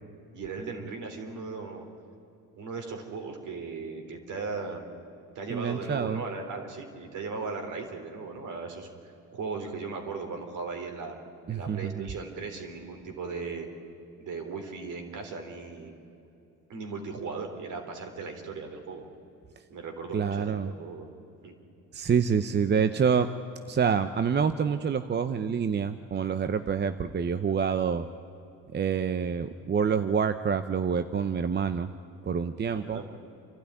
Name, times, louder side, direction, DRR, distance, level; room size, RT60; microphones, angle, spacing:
voice 1, 0.3-1.9 2.6-4.9 5.4-11.2 11.5-13.7 14.2-15.9 16.7-19.1 19.7-21.1 21.4-21.6 32.7-33.0, right 4 dB, 60° right, 4 dB, 3.8 m, -37 dB
voice 2, 5.5-6.2 11.5-12.1 20.1-20.7 21.9-23.3 23.7-28.0 28.7-31.9 32.3-33.0, right 6 dB, 30° right, 10 dB, 0.8 m, -27 dB
28.5 x 12.5 x 9.8 m, 2.7 s
supercardioid pair, 90°, 34 cm